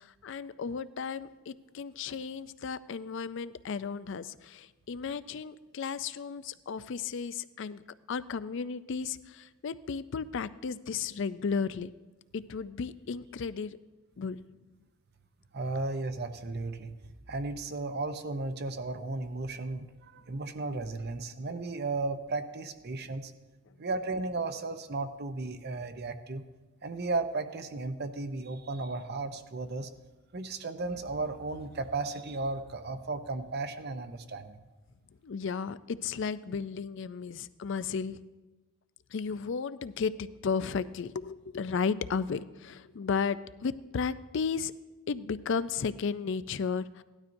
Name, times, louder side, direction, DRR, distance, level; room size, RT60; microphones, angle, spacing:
voice 1, 0.0-11.9 12.3-13.8 14.2-14.4 35.2-38.2 39.1-44.7 45.1-47.0, left 5 dB, 55° left, 15 dB, 0.4 m, -34 dB
voice 2, 15.5-17.0 17.3-23.3 23.8-26.4 26.8-29.9 30.3-34.6, right 3 dB, 45° right, 9 dB, 0.7 m, -35 dB
17.5 x 12.0 x 2.6 m, 1.2 s
head